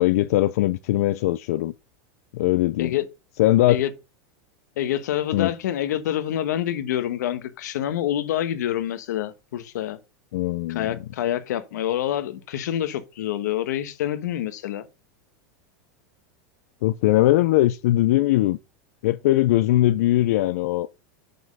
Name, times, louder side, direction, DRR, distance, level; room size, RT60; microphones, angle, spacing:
voice 1, 0.0-1.7 2.3-2.9 3.4-3.8 5.3-5.5 10.3-11.0 16.8-18.6 19.0-20.9, left 15 dB, 60° left, 0.4 m, -20 dB
voice 2, 4.8-10.0 10.7-14.9, left 11 dB, 85° left, 1.2 m, -27 dB
6.1 x 5.3 x 5.3 m
supercardioid pair, 175°, 9 cm